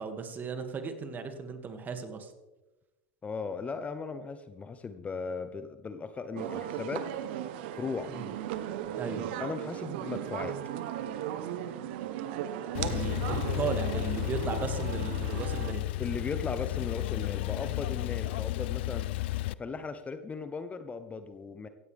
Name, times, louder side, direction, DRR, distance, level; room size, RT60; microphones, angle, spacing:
voice 1, 0.0-2.3 8.1-8.3 9.0-9.2 12.9-15.9, right 5 dB, 30° right, 6 dB, 2.3 m, -36 dB
voice 2, 3.2-7.1 7.7-8.1 9.4-10.6 16.0-19.1 19.6-21.7, left 4 dB, 20° left, 10 dB, 1.0 m, -37 dB
sound 1, 6.3-15.7, right 11 dB, 60° right, 1.2 m, -36 dB
Male speech man speaking / Car / Idling, 12.7-19.5, left 18 dB, 65° left, 0.4 m, -32 dB
16.5 x 16.0 x 3.6 m, 1.1 s
hypercardioid pair, 85°, 6 cm